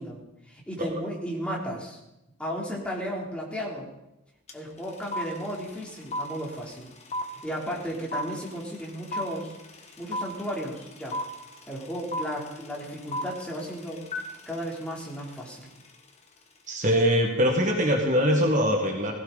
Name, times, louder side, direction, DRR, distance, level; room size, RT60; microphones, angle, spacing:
voice 1, 0.0-2.0 2.4-3.9 4.5-6.9 7.4-9.6 10.0-11.2 11.7-14.1 14.5-15.7, equal, 5° left, -3 dB, 3.4 m, -34 dB
sound 1, 4.5-4.6 4.8-15.9, left 1 dB, 30° left, 1.6 m, -35 dB
voice 2, 16.7-19.1, equal, 35° right, 1 dB, 1.7 m, -22 dB
19.0 x 16.5 x 4.1 m, 0.90 s
head